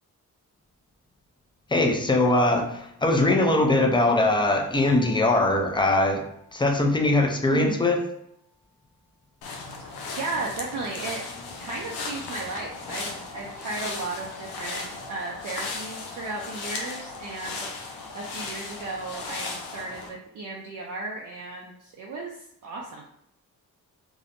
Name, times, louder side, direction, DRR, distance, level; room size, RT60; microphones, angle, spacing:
voice 1, 1.7-6.2 6.5-8.0, left 2 dB, 10° left, 3 dB, 0.5 m, -21 dB
sound 1, 4.7-8.4, left 1 dB, 80° right, 0.9 m, -51 dB
voice 2, 7.5-7.8 9.8-11.2 11.6-17.7 18.1-22.4 22.6-23.0, right 3 dB, 50° right, -1 dB, 0.5 m, -35 dB
sound 2, 9.4-20.1, left 3 dB, 75° left, 0.6 m, -36 dB
2.6 x 2.0 x 2.5 m, 0.74 s
supercardioid pair, 45°, 39 cm